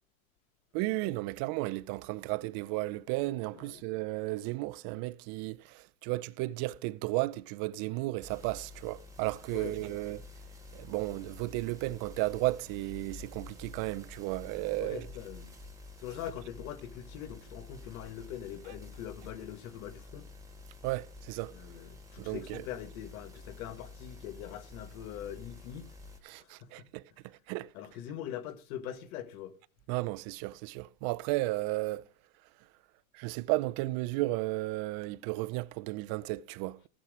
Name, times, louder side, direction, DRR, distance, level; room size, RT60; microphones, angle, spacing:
voice 1, 0.7-10.2 10.7-15.1 20.8-21.5 22.2-22.7 26.2-27.7 29.9-32.1 33.1-36.9, right 20 dB, 55° right, 0.7 m, -34 dB
voice 2, 3.5-3.8 9.5-10.0 14.8-15.6 16.0-20.3 21.5-26.0 26.4-26.9 27.7-29.5, left 10 dB, 75° left, 1.7 m, -43 dB
sound 1, 8.2-26.2, left 3 dB, 10° right, 3.2 m, -49 dB
15.5 x 7.4 x 4.8 m
supercardioid pair, 115°, 42 cm